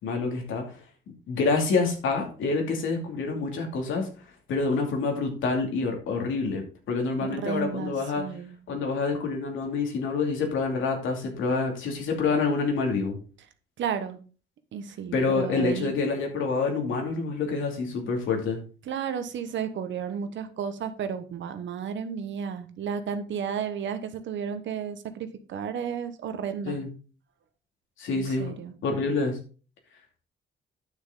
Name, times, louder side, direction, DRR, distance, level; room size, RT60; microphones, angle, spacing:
voice 1, 0.0-0.6 1.3-4.1 4.5-6.6 6.9-8.2 8.7-13.2 15.1-18.6 26.6-26.9 28.0-28.5 28.8-29.4, left 4 dB, 80° left, 2 dB, 2.6 m, -27 dB
voice 2, 7.2-8.5 13.8-14.2 14.7-15.9 18.9-26.8 28.1-28.7, right 7 dB, 70° right, 9 dB, 1.1 m, -33 dB
9.6 x 6.5 x 3.8 m, 0.37 s
cardioid pair, 90°, 20 cm